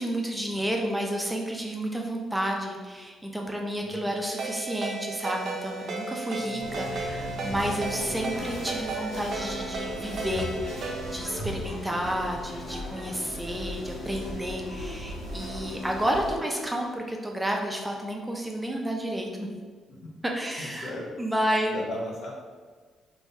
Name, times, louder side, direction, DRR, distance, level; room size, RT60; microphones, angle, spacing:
voice 1, 0.0-19.5 20.2-20.9 21.2-21.8, equal, 10° right, 1 dB, 0.5 m, -31 dB
voice 2, 3.8-4.1 7.1-7.4 19.9-20.1 20.6-21.1 21.7-22.3, left 1 dB, 65° left, -2 dB, 0.7 m, -38 dB
Ringtone, 4.4-11.3, right 4 dB, 60° right, 0.5 m, -35 dB
Organ, 6.3-17.1, left 4 dB, 30° left, 0.8 m, -44 dB
sound 1, 6.6-16.4, equal, 85° left, 1.3 m, -38 dB
3.4 x 2.6 x 2.7 m, 1.5 s
cardioid pair, 90°, 0 cm